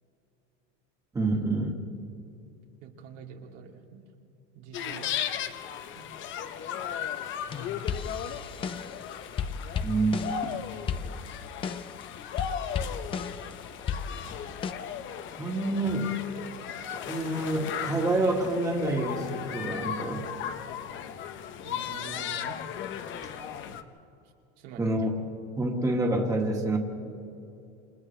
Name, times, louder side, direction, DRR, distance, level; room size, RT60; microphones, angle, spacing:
voice 1, 1.1-1.8 9.8-10.2 15.4-16.2 17.1-20.3 24.8-25.1 25.6-26.8, right 2 dB, 10° right, 0 dB, 1.9 m, -27 dB
voice 2, 2.8-4.0 4.5-5.1 5.9-6.1 21.6-22.6 23.7-23.8 24.2-24.9, right 7 dB, 80° right, 0 dB, 2.9 m, -46 dB
sound 1, 4.7-23.8, left 9 dB, 35° left, 0.9 m, -36 dB
sound 2, 7.5-9.0 9.4-10.5 10.9-12.0 12.4-13.5 13.9-14.7, left 6 dB, 15° left, 0.4 m, -34 dB
29.0 x 27.5 x 3.3 m, 2.7 s
supercardioid pair, 160°, 35 cm